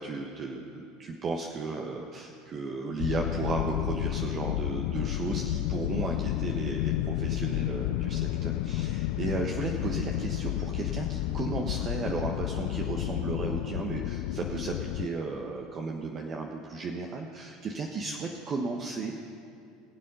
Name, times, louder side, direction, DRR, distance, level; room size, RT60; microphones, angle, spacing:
voice 1, 0.0-19.2, right 4 dB, 40° right, 1 dB, 1.2 m, -34 dB
sound 1, 3.0-15.1, left 15 dB, 65° left, 0.3 m, -31 dB
21.5 x 7.6 x 5.5 m, 2.5 s
hypercardioid pair, 80°, 0 cm